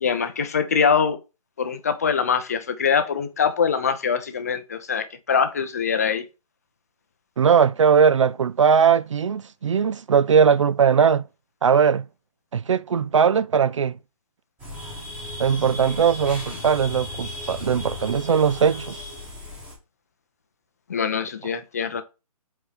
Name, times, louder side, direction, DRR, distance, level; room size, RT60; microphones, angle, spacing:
voice 1, 0.0-1.2 1.6-6.2 20.9-22.0, left 6 dB, 25° left, 0.5 m, -23 dB
voice 2, 7.4-11.2 11.6-12.0 12.5-14.0 15.4-19.0, right 7 dB, 55° right, 0.4 m, -19 dB
sound 1, 14.6-19.7, left 1 dB, 5° right, 1.3 m, -35 dB
4.8 x 4.3 x 5.0 m
hypercardioid pair, 170°, 19 cm